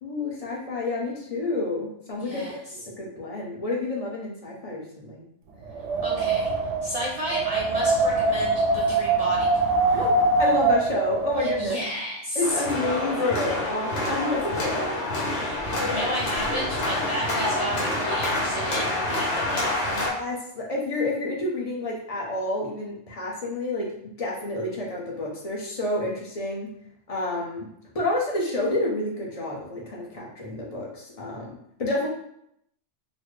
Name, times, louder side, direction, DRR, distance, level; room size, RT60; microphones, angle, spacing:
voice 1, 0.0-5.2 9.9-10.1 10.4-11.8 12.3-14.9 15.4-15.9 20.1-26.7 27.1-27.7 27.9-32.1, left 2 dB, 35° left, -3 dB, 0.7 m, -29 dB
voice 2, 2.2-2.6 6.0-6.5 6.8-9.5 9.9-10.0 11.4-12.6 15.5-20.0, equal, 40° right, -5 dB, 0.7 m, -32 dB
Wind, 5.7-11.7, right 3 dB, 80° right, 0.9 m, -23 dB
sound 1, 12.4-20.1, left 1 dB, 75° left, 1.4 m, -27 dB
4.0 x 2.0 x 3.2 m, 0.73 s
omnidirectional pair, 1.2 m